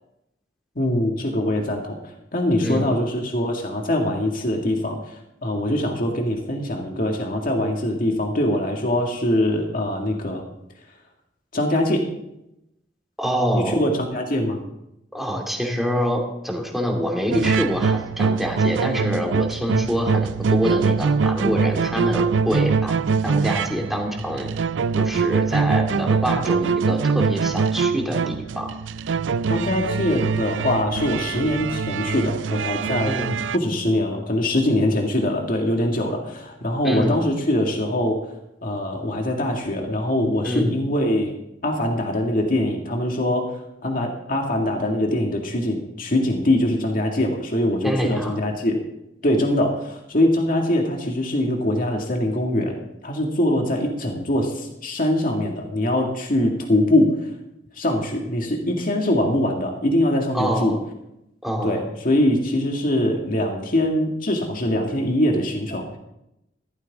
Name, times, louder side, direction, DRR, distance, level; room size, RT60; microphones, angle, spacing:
voice 1, 0.8-2.0 2.3-10.4 11.5-12.1 13.5-14.6 29.5-33.2 33.5-38.2 38.6-41.3 41.6-43.5 43.8-48.8 49.2-52.8 53.0-57.3 57.7-60.7 61.6-66.0, left 1 dB, 50° left, 1 dB, 2.0 m, -23 dB
voice 2, 13.2-13.8 15.1-23.0 23.2-24.5 24.9-28.7 33.0-33.4 36.8-37.2 40.4-40.8 47.8-48.3 60.3-60.8 61.4-61.8, equal, ahead, 0 dB, 2.4 m, -25 dB
sound 1, 17.3-33.6, right 5 dB, 80° right, 0.4 m, -23 dB
15.5 x 14.0 x 3.6 m, 0.85 s
head